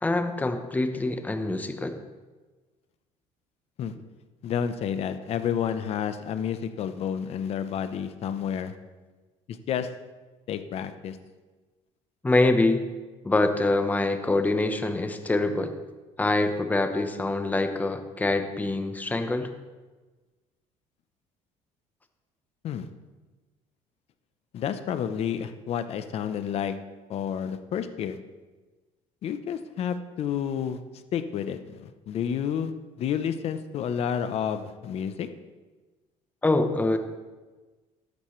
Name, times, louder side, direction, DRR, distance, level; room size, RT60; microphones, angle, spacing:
voice 1, 0.0-1.9 12.2-12.8 13.2-15.7 16.2-19.5 36.4-37.0, left 2 dB, 10° left, 7 dB, 0.9 m, -25 dB
voice 2, 4.4-8.7 9.5-9.9 10.5-11.2 22.6-22.9 24.5-26.7 27.1-28.2 29.2-30.8 31.1-32.7 33.0-35.3, left 8 dB, 50° left, 10 dB, 0.8 m, -30 dB
13.5 x 11.5 x 3.2 m, 1.3 s
cardioid pair, 130°, 13 cm